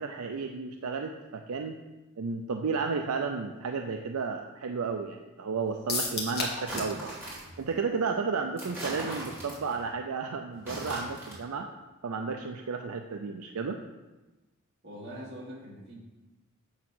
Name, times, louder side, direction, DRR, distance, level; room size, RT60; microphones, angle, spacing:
voice 1, 0.0-1.8 2.2-7.2 7.6-11.7 12.0-13.8, right 5 dB, 80° right, 4 dB, 0.5 m, -33 dB
sound 1, 5.9-7.0 7.3-7.4 7.7-7.8, left 3 dB, 45° left, 1.5 m, -32 dB
sound 2, 6.6-7.6 8.6-9.8 10.5-11.4, right 1 dB, 10° right, 2.8 m, -39 dB
voice 2, 14.8-15.9, equal, 50° right, -6 dB, 2.6 m, -43 dB
8.7 x 3.7 x 6.1 m, 1.1 s
head